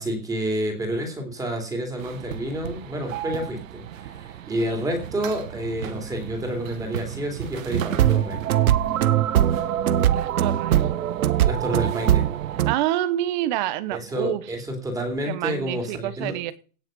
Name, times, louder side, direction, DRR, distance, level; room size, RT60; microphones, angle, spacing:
voice 1, 0.0-8.4 11.4-12.3 13.9-16.3, right 1 dB, 10° right, 3.1 m, -29 dB
sound 1, 2.0-12.7, right 10 dB, 65° right, 1.4 m, -36 dB
sound 2, 7.7-12.7, right 11 dB, 90° right, 1.0 m, -21 dB
voice 2, 10.1-10.8 12.7-14.4 15.3-16.5, right 13 dB, 35° right, 1.0 m, -27 dB
17.0 x 6.6 x 5.4 m
hypercardioid pair, 155°, 42 cm